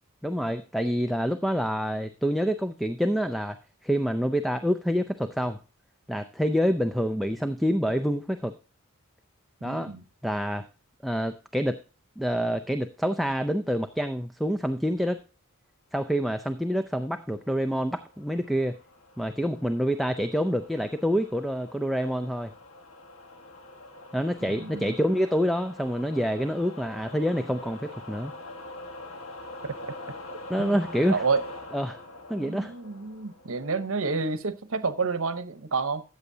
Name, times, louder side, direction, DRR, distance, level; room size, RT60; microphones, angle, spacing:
voice 1, 0.2-3.6 3.8-5.6 6.1-8.5 9.6-9.9 10.2-10.6 11.0-11.8 12.2-15.2 15.9-18.8 19.2-22.5 24.1-28.3 30.5-31.2 31.7-32.0 32.3-32.7, equal, ahead, 6 dB, 0.4 m, -27 dB
voice 2, 9.6-10.0 24.4-24.9 29.6-29.7 30.6-30.8 31.1-31.4 32.4-36.0, right 4 dB, 70° right, 11 dB, 0.9 m, -29 dB
sound 1, 17.4-33.8, left 2 dB, 70° left, 1.5 m, -45 dB
14.0 x 8.0 x 2.7 m, 0.33 s
head